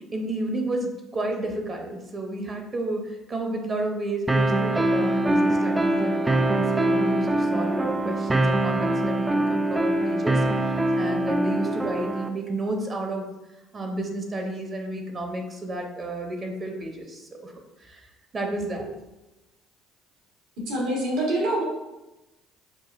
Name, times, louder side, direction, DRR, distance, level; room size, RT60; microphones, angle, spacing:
voice 1, 0.1-13.2 13.7-17.5 17.8-18.1 18.3-18.9, right 1 dB, 40° right, 2 dB, 0.8 m, -31 dB
sound 1, 4.3-12.3, right 1 dB, 15° right, 0.4 m, -23 dB
voice 2, 20.6-21.6, right 1 dB, 80° right, -3 dB, 1.4 m, -25 dB
6.0 x 2.4 x 2.5 m, 1.0 s
supercardioid pair, 80°, 0 cm